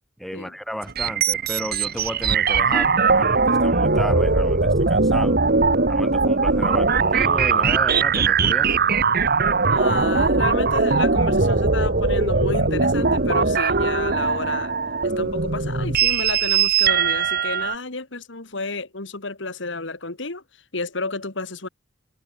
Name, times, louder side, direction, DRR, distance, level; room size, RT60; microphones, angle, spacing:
voice 1, 0.2-5.4 5.9-8.7, equal, ahead, 3.3 m, -33 dB
sound 1, 0.8-17.8, right 4 dB, 50° right, 2.0 m, -20 dB
voice 2, 9.7-14.7 15.0-20.4 20.7-21.7, left 3 dB, 65° left, 2.4 m, -31 dB
head